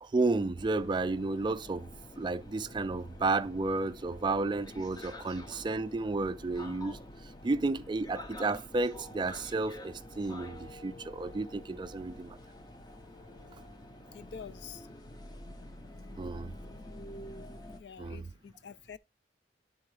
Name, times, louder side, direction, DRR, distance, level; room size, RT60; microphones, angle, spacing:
voice 1, 0.0-1.9 2.2-7.0 7.4-12.4 16.2-16.5 18.0-18.3, right 3 dB, 25° right, 0.3 m, -32 dB
sound 1, 0.6-17.8, left 1 dB, 25° left, 0.5 m, -48 dB
voice 2, 14.1-14.8 17.8-19.0, left 7 dB, 75° left, 0.4 m, -47 dB
10.5 x 3.8 x 3.1 m
head